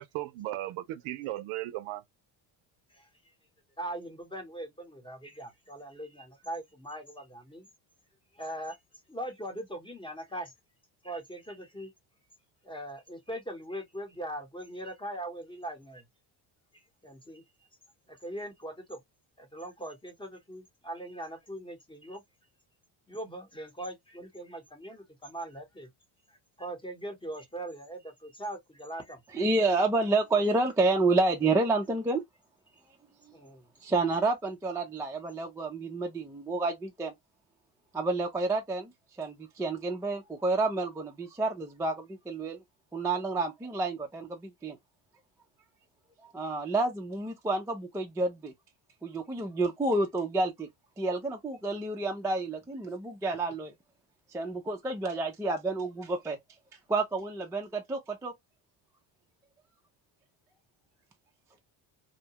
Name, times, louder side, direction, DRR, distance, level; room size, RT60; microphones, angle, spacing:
voice 1, 0.0-2.0, right 16 dB, 80° right, 0.6 m, -36 dB
voice 2, 3.8-7.7 8.3-8.8 9.1-10.5 11.0-11.9 12.6-16.0 16.7-17.4 18.1-19.0 19.4-22.2 23.1-25.9 26.6-29.2 33.3-33.7, right 1 dB, 10° left, 0.8 m, -40 dB
voice 3, 29.3-32.2 33.8-37.1 37.9-38.9 39.2-42.6 42.9-44.8 46.3-48.5 49.0-50.7 51.0-53.7 54.3-56.4 56.9-58.3, right 3 dB, 5° right, 0.4 m, -29 dB
2.8 x 2.2 x 2.8 m
cardioid pair, 120°, 49 cm